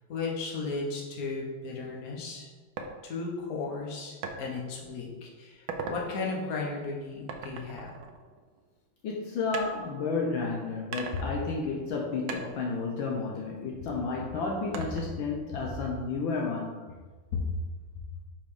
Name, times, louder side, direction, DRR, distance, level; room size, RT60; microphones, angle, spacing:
voice 1, 0.1-2.5 3.0-7.9 17.3-17.5, left 4 dB, 50° left, -2 dB, 1.5 m, -35 dB
sound 1, 2.8-2.9 4.2-4.4 4.9-5.2 5.5-6.0 7.3-8.8 9.5-10.4 10.9-12.0 12.3-13.9 14.7-15.3, right 5 dB, 80° right, 1.5 m, -40 dB
voice 2, 9.0-16.8, left 4 dB, 75° left, 0 dB, 1.4 m, -32 dB
6.0 x 4.2 x 4.9 m, 1.4 s
omnidirectional pair, 2.2 m